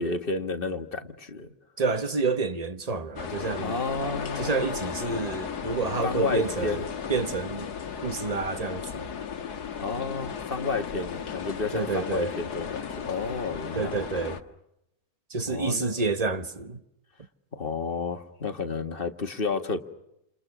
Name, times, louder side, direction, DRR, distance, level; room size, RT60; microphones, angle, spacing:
voice 1, 0.0-1.5 3.6-4.7 6.0-6.9 9.8-14.0 15.5-16.1 17.5-19.8, left 4 dB, 35° left, 1.9 m, -31 dB
voice 2, 1.8-3.8 4.4-6.8 7.1-7.7 8.0-9.2 11.7-12.3 13.7-14.4 15.3-16.8, right 4 dB, 25° right, 1.2 m, -29 dB
sound 1, 3.2-14.4, left 7 dB, 80° left, 2.0 m, -35 dB
29.5 x 28.5 x 6.2 m
omnidirectional pair, 1.6 m